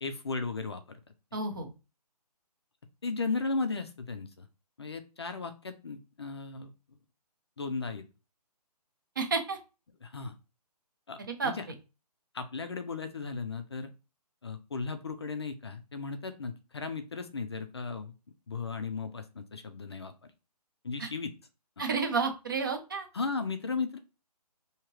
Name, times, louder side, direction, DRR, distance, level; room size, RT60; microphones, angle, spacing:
voice 1, 0.0-1.0 3.0-4.5 4.8-6.7 7.6-8.0 10.0-10.3 11.1-11.6 12.3-13.9 14.4-18.1 18.5-20.1 20.8-21.3 23.1-24.0, left 4 dB, 40° left, 8 dB, 0.5 m, -35 dB
voice 2, 1.3-1.7 9.2-9.6 11.3-11.5 21.0-21.1 21.8-23.1, right 4 dB, 30° right, 5 dB, 0.7 m, -31 dB
4.9 x 2.8 x 3.0 m, 0.30 s
hypercardioid pair, 175°, 21 cm